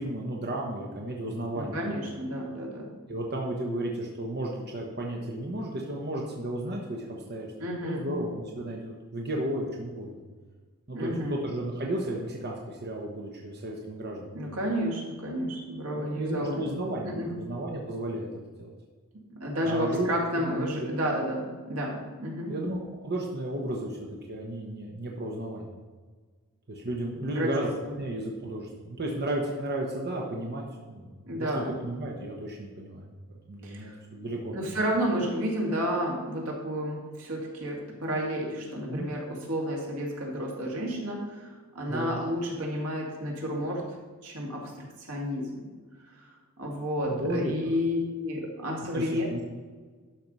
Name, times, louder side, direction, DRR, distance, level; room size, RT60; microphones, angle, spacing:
voice 1, 0.0-1.8 3.1-7.5 7.8-10.2 10.9-14.4 15.9-18.3 18.6-18.7 19.6-20.1 20.6-20.7 22.5-25.7 26.7-27.7 28.0-31.5 31.8-33.1 33.5-34.7 38.9-39.1 41.9-42.1 47.0-47.5 48.9-49.4, right 1 dB, 45° right, -1 dB, 1.1 m, -33 dB
voice 2, 1.5-2.9 7.6-8.1 10.9-11.4 14.3-16.6 17.1-17.4 19.1-22.6 27.4-27.5 27.8-27.9 31.2-31.7 33.6-33.9 34.5-44.0 44.2-45.6 46.2-46.3 46.6-49.3, equal, 85° right, -2 dB, 2.3 m, -31 dB
12.0 x 4.7 x 5.5 m, 1.5 s
head